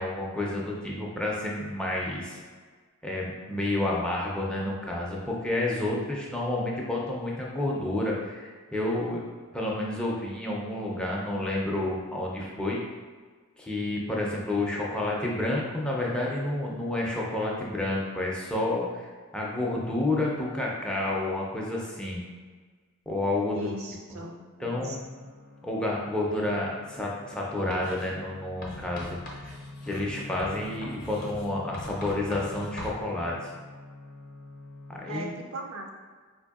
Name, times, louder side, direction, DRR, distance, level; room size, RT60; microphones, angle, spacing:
voice 1, 0.0-2.4 3.0-9.2 9.5-12.8 13.6-19.1 19.3-22.2 23.1-23.7 24.6-25.0 25.6-29.2 29.8-33.3 34.9-35.4, left 1 dB, 5° left, -4 dB, 0.4 m, -30 dB
voice 2, 23.5-24.4 24.7-25.0 35.1-35.9, right 1 dB, 85° right, 1 dB, 0.5 m, -38 dB
sound 1, 24.7-35.1, left 2 dB, 85° left, 0.5 m, -46 dB
Writing, 27.7-28.1 28.6-33.0, left 1 dB, 40° left, 0.6 m, -42 dB
4.4 x 2.6 x 2.3 m, 1.5 s
head